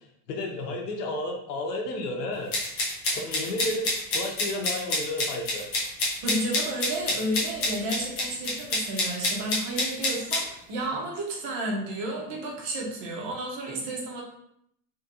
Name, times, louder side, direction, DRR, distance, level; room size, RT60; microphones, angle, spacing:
voice 1, 0.3-2.5 3.1-5.7, left 2 dB, 80° left, 2 dB, 0.9 m, -32 dB
sound 1, 2.5-10.4, left 2 dB, 20° left, 0.3 m, -27 dB
voice 2, 6.2-14.2, right 1 dB, 35° right, -1 dB, 0.8 m, -32 dB
3.0 x 2.8 x 2.5 m, 0.73 s
supercardioid pair, 145°, 48 cm